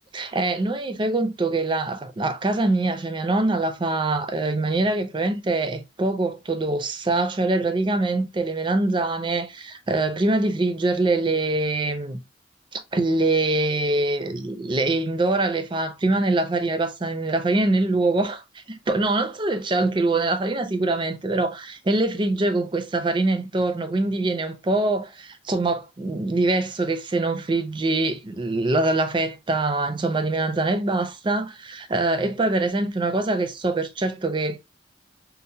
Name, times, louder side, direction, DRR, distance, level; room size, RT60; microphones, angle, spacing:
voice 1, 0.1-12.2 12.7-18.4 18.7-34.6, right 2 dB, 25° right, 0.4 m, -24 dB
4.3 x 2.1 x 2.6 m
head